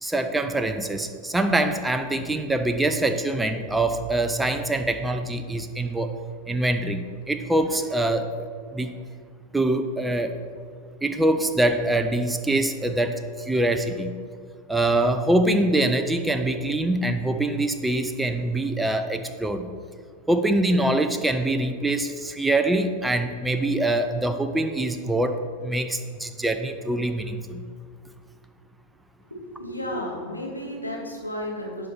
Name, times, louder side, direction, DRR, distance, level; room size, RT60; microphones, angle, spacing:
voice 1, 0.0-6.1 6.5-9.0 9.5-10.4 11.0-14.2 14.7-19.7 20.3-27.6, right 1 dB, 5° right, 7 dB, 0.5 m, -24 dB
voice 2, 29.3-31.9, left 1 dB, 85° left, -2 dB, 1.9 m, -33 dB
11.0 x 4.5 x 5.9 m, 2.1 s
figure-of-eight pair, 90°, 0 cm